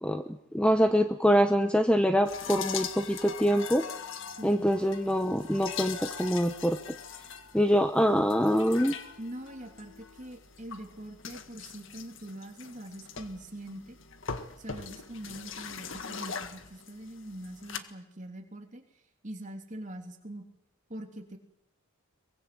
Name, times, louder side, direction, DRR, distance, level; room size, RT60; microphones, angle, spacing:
voice 1, 0.5-3.8 4.4-6.8 7.5-9.0, equal, 5° left, 7 dB, 1.0 m, -24 dB
sound 1, 2.2-17.8, left 6 dB, 60° left, 1.8 m, -41 dB
voice 2, 4.4-4.7 9.2-14.0 14.6-18.8 19.2-20.4 20.9-21.4, right 1 dB, 35° right, 3 dB, 3.2 m, -43 dB
23.5 x 22.5 x 7.8 m, 0.81 s
head